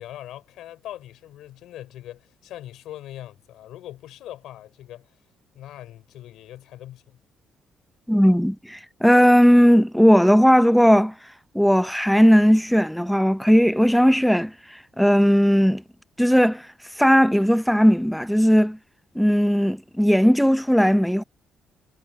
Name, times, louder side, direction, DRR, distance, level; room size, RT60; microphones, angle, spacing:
voice 1, 0.0-5.2 5.5-7.2, left 13 dB, 85° left, 3.4 m, -41 dB
voice 2, 8.1-11.1 11.5-14.5 15.0-15.8 16.2-16.6 17.0-18.8 19.2-21.2, equal, ahead, 0.5 m, -17 dB
cardioid pair, 90°, 0 cm